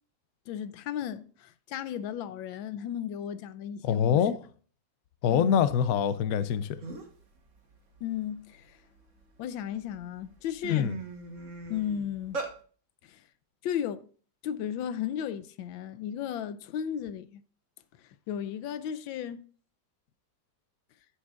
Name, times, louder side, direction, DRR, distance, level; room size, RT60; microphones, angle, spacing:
voice 1, 0.5-4.2 5.3-5.6 8.0-8.8 9.4-10.9 11.7-12.4 13.0-13.2 13.6-14.1 14.4-17.4 18.0-19.4, left 9 dB, 90° left, 1.4 m, -35 dB
voice 2, 3.8-4.3 5.2-6.8 10.7-10.9, left 8 dB, 65° left, 0.9 m, -24 dB
sound 1, 6.5-6.6 6.8-7.2 7.7-9.2 9.8-10.0 10.3-12.5, right 3 dB, 40° right, 1.7 m, -39 dB
13.0 x 7.3 x 2.4 m
omnidirectional pair, 2.1 m